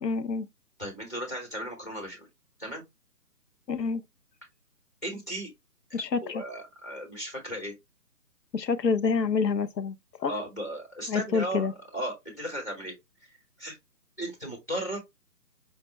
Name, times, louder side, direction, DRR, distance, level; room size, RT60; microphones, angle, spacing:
voice 1, 0.0-0.5 3.7-4.0 5.9-6.4 8.5-10.3 11.1-11.7, left 5 dB, 90° left, 0.8 m, -27 dB
voice 2, 0.8-2.3 2.6-2.8 5.0-5.5 5.9-7.7 10.2-11.7 11.9-12.9 13.6-13.8 14.2-15.0, right 1 dB, 10° left, 0.8 m, -36 dB
5.0 x 2.1 x 3.3 m
figure-of-eight pair, 160°, 49 cm